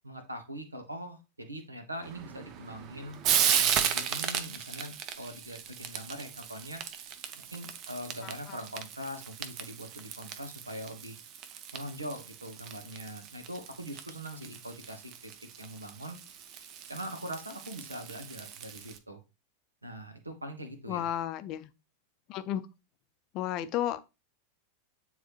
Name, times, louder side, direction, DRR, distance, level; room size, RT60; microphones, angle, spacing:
voice 1, 0.0-3.2 3.5-6.8 7.5-11.2 11.7-15.3 15.6-16.2 16.9-19.2 19.8-21.1, equal, 85° right, 1.5 m, -42 dB
Frying (food), 2.0-19.0, right 8 dB, 40° right, 0.8 m, -35 dB
voice 2, 8.2-8.6 20.9-21.7 22.3-22.6 23.3-24.0, left 12 dB, 40° left, 0.6 m, -33 dB
9.3 x 3.9 x 3.1 m
figure-of-eight pair, 90°, 0 cm